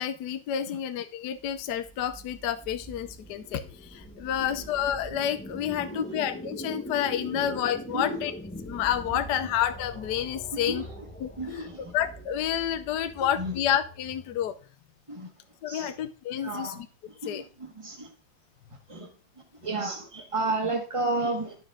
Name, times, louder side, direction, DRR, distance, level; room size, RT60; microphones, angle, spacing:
voice 1, 0.0-8.3 8.7-10.8 11.2-11.3 11.6-11.7 11.9-14.6 15.6-16.9 17.2-17.4, left 10 dB, 70° left, 10 dB, 1.2 m, -29 dB
sound 1, 1.4-14.6, equal, 15° left, 0.3 m, -42 dB
voice 2, 5.9-6.2 7.3-7.5 7.9-8.2 9.4-9.5 10.5-11.0 11.4-11.9 13.2-13.5 15.1-15.3 15.7-15.9 16.4-16.8 17.1-18.1 18.9-19.1 19.6-21.6, right 2 dB, 20° right, 3 dB, 1.4 m, -32 dB
11.0 x 6.3 x 3.6 m, 0.36 s
omnidirectional pair, 2.0 m